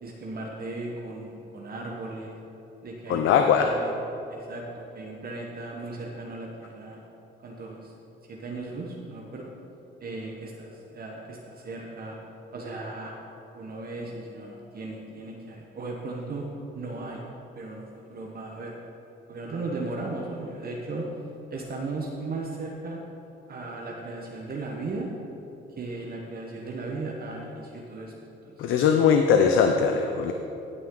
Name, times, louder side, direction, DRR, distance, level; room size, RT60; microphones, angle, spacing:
voice 1, 0.0-2.4 2.8-3.9 4.3-7.0 7.4-7.9 8.3-9.4 10.0-12.2 12.5-13.1 13.5-16.5 16.7-17.2 17.6-18.7 19.3-21.1 21.5-23.0 23.5-25.1 25.8-28.1 28.4-28.9, right 2 dB, 50° right, -1 dB, 1.2 m, -36 dB
voice 2, 3.1-3.7 28.6-30.3, left 7 dB, 80° left, 5 dB, 0.6 m, -20 dB
16.0 x 6.1 x 3.9 m, 3.0 s
cardioid pair, 90°, 20 cm